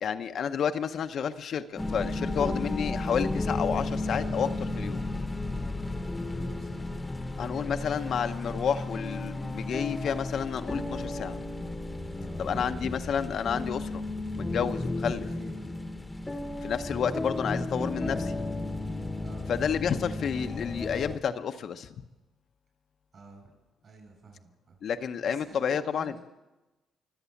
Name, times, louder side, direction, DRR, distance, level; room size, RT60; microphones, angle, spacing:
voice 1, 0.0-5.0 7.4-11.4 12.4-14.0 14.4-15.3 16.6-18.3 19.5-21.9 24.8-26.2, left 7 dB, 60° left, 8 dB, 0.7 m, -30 dB
sound 1, 1.8-21.2, left 2 dB, 15° left, 1.0 m, -33 dB
voice 2, 2.3-2.7 5.4-7.0 12.1-12.8 15.2-15.7 19.2-19.5 23.1-23.5 23.8-24.8 25.2-26.2, right 3 dB, 50° right, 3 dB, 7.6 m, -50 dB
24.0 x 8.1 x 7.1 m, 1.1 s
cardioid pair, 90°, 0 cm